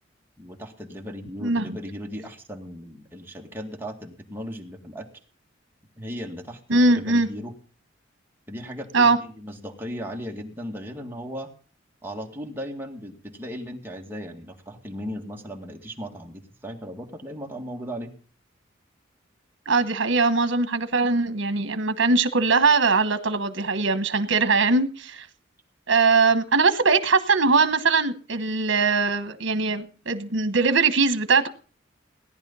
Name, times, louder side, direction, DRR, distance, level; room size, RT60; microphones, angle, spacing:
voice 1, 0.4-5.1 6.0-7.5 8.5-11.5 12.0-18.1, equal, 10° right, 0 dB, 2.2 m, -37 dB
voice 2, 6.7-7.3 8.9-9.2 19.7-25.3 25.9-31.5, right 4 dB, 80° right, 10 dB, 1.2 m, -21 dB
17.5 x 10.5 x 5.6 m, 0.41 s
head